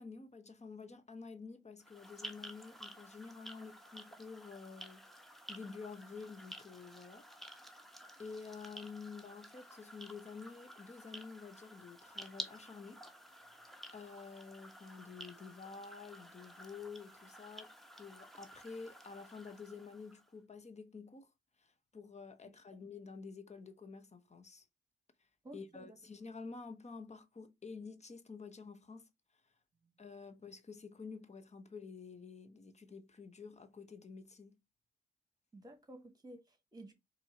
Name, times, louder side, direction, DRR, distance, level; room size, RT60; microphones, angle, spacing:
voice 1, 0.0-5.0 5.5-7.3 8.2-13.0 13.3-13.6 13.9-17.7 18.0-21.3 21.6-24.7 25.5-29.1 30.0-34.6, left 4 dB, 35° left, 1.0 m, -50 dB
sound 1, 1.8-20.3, equal, ahead, 0.9 m, -52 dB
voice 2, 25.4-26.0 35.5-36.9, right 1 dB, 20° right, 1.6 m, -53 dB
4.4 x 2.8 x 4.3 m
cardioid pair, 70°, 20 cm